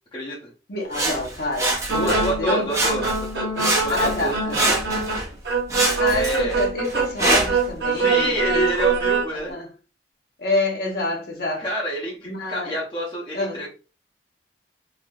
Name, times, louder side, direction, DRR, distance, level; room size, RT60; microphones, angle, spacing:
voice 1, 0.1-0.5 1.9-4.3 4.6-4.7 6.1-6.6 7.9-9.6 11.6-13.7, right 1 dB, 25° left, 0.7 m, -27 dB
voice 2, 0.7-2.7 3.9-4.6 5.9-8.7 9.3-9.7 10.4-11.7 12.2-12.7 13.3-13.7, left 2 dB, 60° left, 1.0 m, -27 dB
Sawing, 0.9-2.4 2.7-3.3 3.6-5.3 5.7-7.7 8.4-8.5, right 2 dB, 15° right, 0.5 m, -25 dB
sound 1, 1.9-9.2, right 4 dB, 75° right, 0.9 m, -24 dB
3.4 x 2.6 x 2.3 m
head